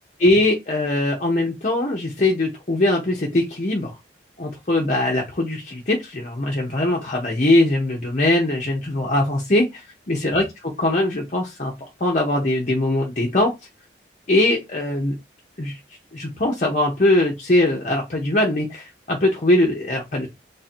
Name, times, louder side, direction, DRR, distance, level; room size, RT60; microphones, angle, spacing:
voice 1, 0.2-3.9 4.4-11.7 12.0-13.5 14.3-15.1 15.6-15.8 16.1-20.3, left 1 dB, 45° left, 0.7 m, -21 dB
3.4 x 2.6 x 4.3 m
head